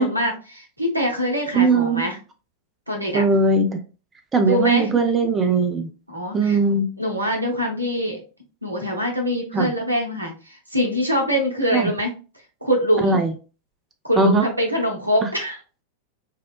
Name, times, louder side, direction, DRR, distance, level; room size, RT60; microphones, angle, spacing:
voice 1, 0.0-2.2 2.9-3.2 4.4-5.0 6.1-6.6 7.0-8.2 8.6-12.1 12.6-13.2 14.0-15.6, equal, 85° right, 1 dB, 0.6 m, -24 dB
voice 2, 1.5-2.1 3.1-3.8 4.3-5.9 6.3-6.9 9.5-9.7 11.7-11.9 13.0-13.3 14.2-14.5, right 3 dB, 20° right, 7 dB, 0.3 m, -19 dB
2.8 x 2.1 x 2.2 m, 0.34 s
figure-of-eight pair, 90°, 0 cm